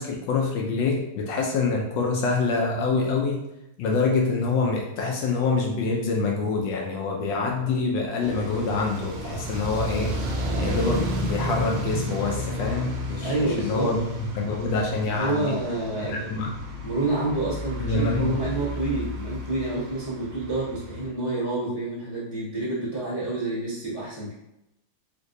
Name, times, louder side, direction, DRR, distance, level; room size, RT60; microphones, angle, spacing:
voice 1, 0.0-3.4 3.8-15.6 16.0-16.5 17.8-18.4, left 3 dB, 75° left, 0 dB, 1.1 m, -26 dB
sound 1, 8.2-21.1, equal, 85° right, 1.5 m, -32 dB
voice 2, 13.2-13.9 15.1-16.4 16.8-24.3, right 2 dB, 25° left, -10 dB, 0.6 m, -28 dB
3.9 x 2.5 x 2.6 m, 0.87 s
omnidirectional pair, 2.3 m